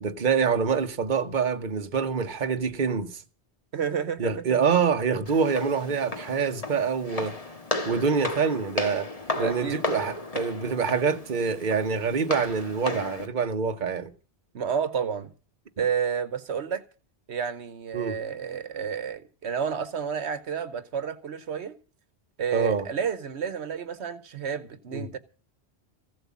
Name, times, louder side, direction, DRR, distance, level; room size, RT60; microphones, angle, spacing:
voice 1, 0.0-3.2 4.2-7.4 7.9-9.1 9.4-14.1 17.9-18.2 22.5-22.9 24.9-25.1, right 6 dB, 45° right, 1.2 m, -26 dB
voice 2, 3.7-4.3 9.3-9.8 14.5-15.3 15.8-16.8 17.3-21.7 22.4-25.2, right 7 dB, 75° right, 1.2 m, -30 dB
Walk footsteps, 5.3-13.3, left 2 dB, 35° left, 1.7 m, -34 dB
15.5 x 7.8 x 8.4 m
omnidirectional pair, 1.1 m